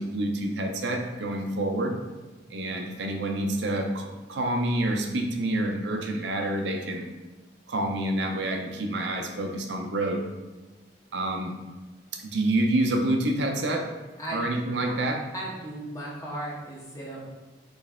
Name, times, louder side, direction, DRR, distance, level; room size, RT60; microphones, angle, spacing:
voice 1, 0.0-2.0 2.5-7.1 7.7-10.3 11.1-11.5 12.1-14.0 14.3-15.3, right 1 dB, 70° right, 3 dB, 0.6 m, -28 dB
voice 2, 15.3-17.3, right 1 dB, 20° left, -5 dB, 1.1 m, -36 dB
4.3 x 3.2 x 3.6 m, 1.2 s
head